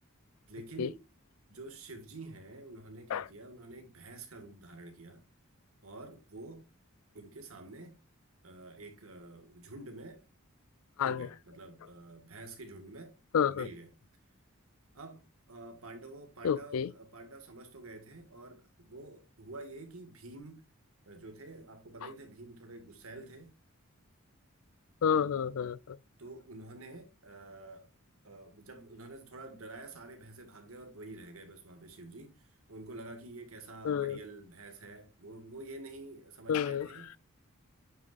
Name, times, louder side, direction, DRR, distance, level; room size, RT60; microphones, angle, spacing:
voice 1, 0.5-1.0 1.5-5.2 5.8-6.7 7.1-8.0 8.4-10.2 11.0-13.1 13.5-13.9 14.9-20.7 21.0-23.5 26.2-27.9 28.2-37.1, right 2 dB, 75° right, 1.9 m, -48 dB
voice 2, 13.3-13.7 16.4-16.9 25.0-26.0 33.8-34.2 36.5-36.9, left 7 dB, 75° left, 0.4 m, -29 dB
8.9 x 6.2 x 2.5 m
head